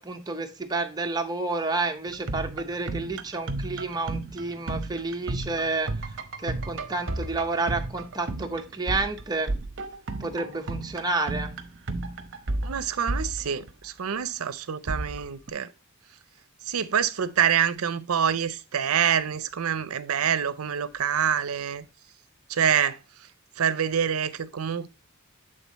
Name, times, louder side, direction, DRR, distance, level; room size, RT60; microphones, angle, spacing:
voice 1, 0.0-5.9 6.4-9.5 10.2-11.5, right 3 dB, 20° right, 0.8 m, -30 dB
sound 1, 2.1-14.0 14.9-15.5, right 2 dB, 60° right, 0.8 m, -33 dB
voice 2, 12.6-15.7 16.6-21.9 22.5-23.0 23.6-24.9, right 8 dB, 80° right, 0.6 m, -26 dB
8.1 x 3.7 x 4.0 m
head